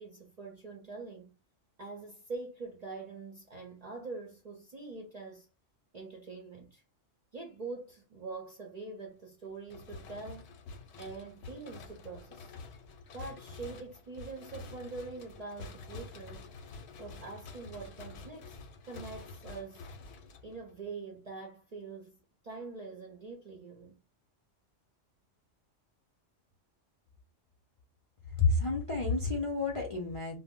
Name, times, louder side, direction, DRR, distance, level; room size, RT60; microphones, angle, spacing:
voice 1, 0.0-1.3 1.8-5.5 5.9-6.8 7.3-10.5 11.0-12.5 13.1-16.5 17.0-18.6 18.8-19.9 20.4-24.0, right 3 dB, 50° right, 0.5 m, -44 dB
sound 1, 9.7-20.9, left 3 dB, 65° left, 0.8 m, -48 dB
voice 2, 28.4-30.4, left 3 dB, 50° left, 0.4 m, -29 dB
2.0 x 2.0 x 3.5 m
omnidirectional pair, 1.3 m